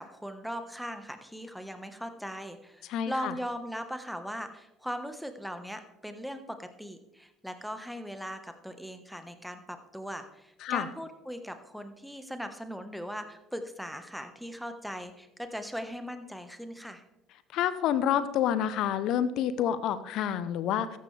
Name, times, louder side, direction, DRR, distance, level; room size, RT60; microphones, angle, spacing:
voice 1, 0.0-17.0, equal, ahead, 8 dB, 1.4 m, -39 dB
voice 2, 2.9-3.3 10.6-10.9 17.5-21.0, left 10 dB, 60° left, 14 dB, 0.8 m, -28 dB
14.0 x 10.5 x 3.4 m, 0.90 s
hypercardioid pair, 70°, 0 cm